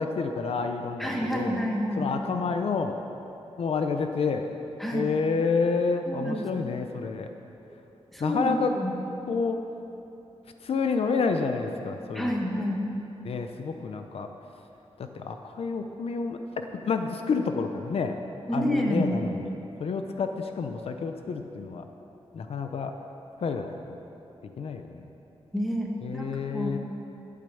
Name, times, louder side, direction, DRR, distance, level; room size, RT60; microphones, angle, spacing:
voice 1, 0.0-1.6 2.0-3.0 3.6-4.5 4.9-7.3 8.2-8.7 9.3-9.6 10.6-12.4 13.2-14.3 15.0-18.2 18.5-19.5 19.8-21.9 22.3-22.9 23.4-24.0 24.6-25.1 26.0-26.8, left 4 dB, 70° left, 6 dB, 0.7 m, -29 dB
voice 2, 1.0-2.1 4.8-5.1 6.1-6.5 8.1-8.9 12.1-12.8 18.5-19.1 25.5-26.8, equal, ahead, -1 dB, 1.4 m, -29 dB
12.5 x 8.6 x 7.0 m, 3.0 s
wide cardioid pair, 165°, 11 cm